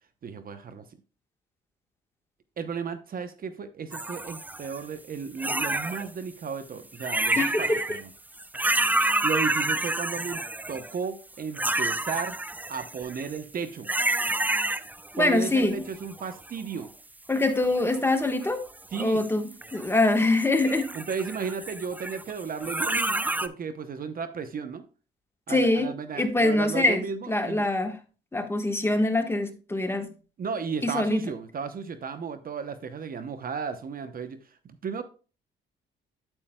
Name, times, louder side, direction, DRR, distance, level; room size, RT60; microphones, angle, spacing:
voice 1, 0.2-0.8 2.6-8.1 9.2-10.4 10.7-12.4 12.7-13.9 15.2-16.9 18.9-19.2 20.9-24.8 25.5-27.7 30.4-34.4 34.6-35.0, right 6 dB, 45° right, 10 dB, 0.8 m, -34 dB
sound 1, 3.9-4.8 5.4-6.1 6.9-8.0 8.4-11.0 11.5-13.4 13.8-15.1 15.5-16.5 17.4-18.5 18.9-20.1 20.4-23.5, right 2 dB, 10° right, 0.4 m, -29 dB
voice 2, 7.3-7.8 15.1-15.8 17.3-18.6 19.0-20.8 25.5-25.9 26.1-28.0 28.3-30.1 30.8-31.2, left 2 dB, 10° left, 6 dB, 1.3 m, -24 dB
8.9 x 8.4 x 2.2 m, 0.35 s
cardioid pair, 90°, 20 cm